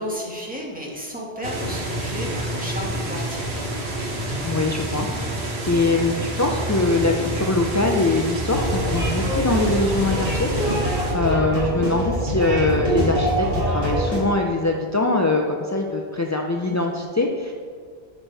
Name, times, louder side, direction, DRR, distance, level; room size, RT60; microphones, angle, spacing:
voice 1, 0.0-3.5, equal, 10° right, -4 dB, 1.9 m, -32 dB
sound 1, 1.4-11.1, right 1 dB, 80° right, 1.7 m, -28 dB
voice 2, 4.4-17.5, left 2 dB, 25° left, 1 dB, 0.4 m, -23 dB
sound 2, 8.5-14.2, right 1 dB, 60° right, 2.8 m, -24 dB
11.5 x 7.4 x 3.4 m, 2.1 s
omnidirectional pair, 1.1 m